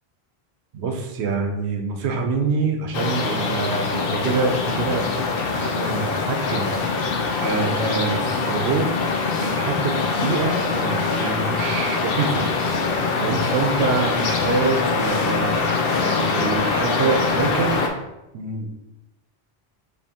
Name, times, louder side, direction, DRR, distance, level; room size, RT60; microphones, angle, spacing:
voice 1, 0.7-5.1 5.5-6.7 7.4-8.9 9.3-12.5 13.2-17.8 18.3-18.9, right 4 dB, 85° right, 5 dB, 0.9 m, -26 dB
sound 1, 2.9-17.9, left 4 dB, 65° left, 0.7 m, -23 dB
4.3 x 2.9 x 2.8 m, 0.94 s
omnidirectional pair, 1.1 m